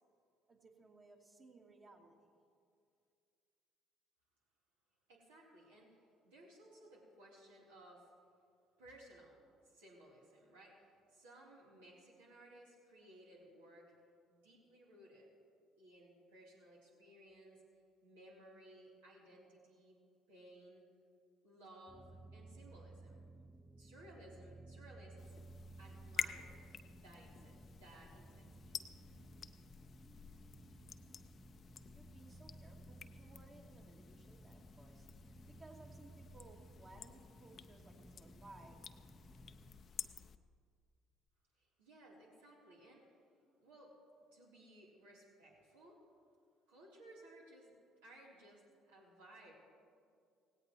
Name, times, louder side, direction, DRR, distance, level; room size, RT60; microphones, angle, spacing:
voice 1, 0.5-2.4 31.9-38.8, right 2 dB, 35° right, 0 dB, 2.4 m, -61 dB
voice 2, 5.1-8.1 8.8-13.9 14.3-15.3 15.8-17.6 18.0-20.0 20.3-20.8 21.4-23.2 23.8-25.2 25.8-26.6 26.9-28.8 41.6-43.0 43.6-43.9 44.3-46.0 46.7-47.8 48.0-49.6, right 1 dB, 80° right, -5 dB, 3.4 m, -60 dB
sound 1, 21.9-39.8, right 2 dB, 5° left, 0.9 m, -57 dB
sound 2, 25.2-40.4, left 7 dB, 45° left, 0.6 m, -50 dB
18.0 x 17.5 x 3.1 m, 2.3 s
hypercardioid pair, 55°, 0 cm